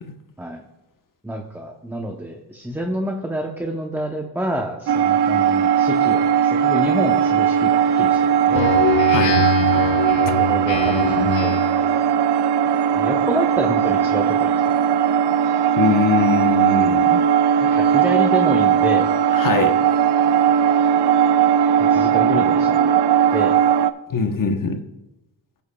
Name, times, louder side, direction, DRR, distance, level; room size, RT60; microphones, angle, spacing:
voice 1, 1.2-8.8 10.4-12.0 12.7-14.5 17.8-19.1 21.9-23.0 23.3-23.6, equal, 5° right, 2 dB, 0.7 m, -28 dB
sound 1, 4.9-23.9, right 8 dB, 60° right, 0.5 m, -18 dB
Speech synthesizer, 8.5-11.9, left 8 dB, 80° left, 0.9 m, -24 dB
voice 2, 15.8-17.2 19.3-19.7 24.1-24.8, left 5 dB, 45° left, 6 dB, 1.0 m, -21 dB
16.0 x 7.0 x 2.3 m, 0.98 s
wide cardioid pair, 115°, 45 cm